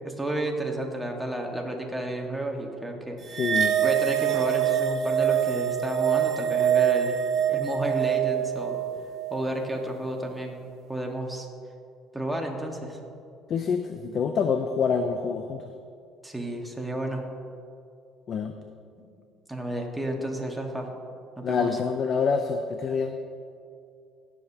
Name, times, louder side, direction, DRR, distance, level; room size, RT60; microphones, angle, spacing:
voice 1, 0.0-3.4 3.8-7.2 7.5-8.8 9.3-10.6 10.9-11.5 12.1-13.0 16.2-17.2 19.5-20.9 21.4-21.8, right 1 dB, 5° right, 0 dB, 1.6 m, -31 dB
sound 1, 3.3-9.9, right 10 dB, 50° right, 0.7 m, -25 dB
voice 2, 3.4-3.8 13.5-15.6 18.3-18.5 21.4-23.2, left 6 dB, 50° left, 7 dB, 0.5 m, -26 dB
17.0 x 7.2 x 2.9 m, 2.4 s
cardioid pair, 100°, 0 cm